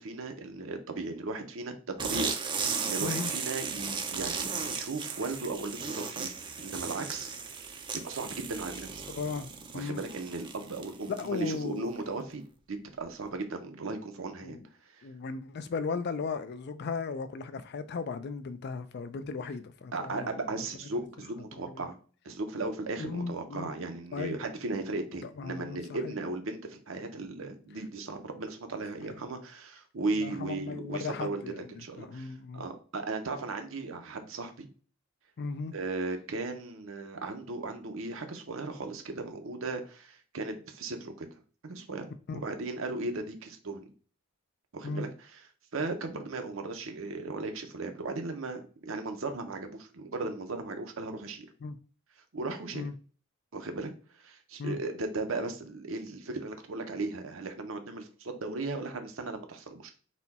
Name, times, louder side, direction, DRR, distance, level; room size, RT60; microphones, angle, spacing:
voice 1, 0.0-1.7 2.0-7.3 7.7-9.1 9.7-14.6 14.9-15.0 19.9-22.0 22.2-34.7 35.7-41.3 41.6-43.9 44.7-45.4 45.7-51.5 52.3-52.9 53.5-53.9 54.2-60.0, right 3 dB, 70° right, 0.8 m, -36 dB
sound 1, 2.0-11.5, right 5 dB, 25° right, 0.5 m, -36 dB
voice 2, 3.0-3.3 9.1-10.0 11.1-11.9 14.4-14.7 15.0-20.3 21.5-21.9 23.0-23.7 24.1-24.4 25.2-25.8 26.0-26.1 30.1-32.7 35.4-35.7 42.3-42.4 44.8-45.1 51.6-51.8 52.7-52.9 54.6-54.8, left 4 dB, 55° left, 0.4 m, -36 dB
4.2 x 2.3 x 4.1 m
head